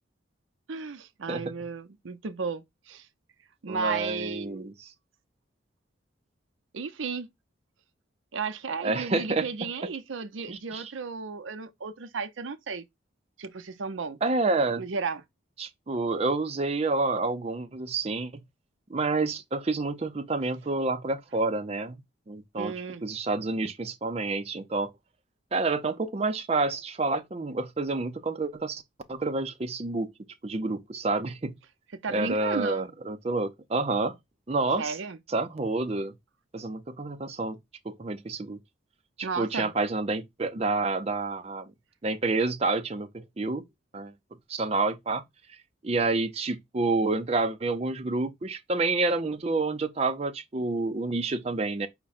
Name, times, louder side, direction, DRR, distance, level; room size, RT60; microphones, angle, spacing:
voice 1, 0.7-3.1 3.6-4.7 6.7-7.3 8.3-12.9 13.4-14.2 14.8-15.2 22.6-23.0 31.9-32.9 34.8-35.2 39.2-39.7, right 5 dB, 85° right, 0.6 m, -34 dB
voice 2, 3.7-4.9 8.8-9.5 10.5-10.9 14.2-14.8 15.6-18.3 18.9-22.0 22.3-22.7 23.0-24.9 25.5-28.8 29.1-30.1 30.4-31.5 32.1-34.2 34.5-35.0 35.3-36.1 36.5-37.6 37.8-38.6 39.2-41.7 42.0-43.7 43.9-44.1 44.5-45.2 45.8-51.9, right 3 dB, 30° right, 0.5 m, -28 dB
4.8 x 2.2 x 4.1 m
head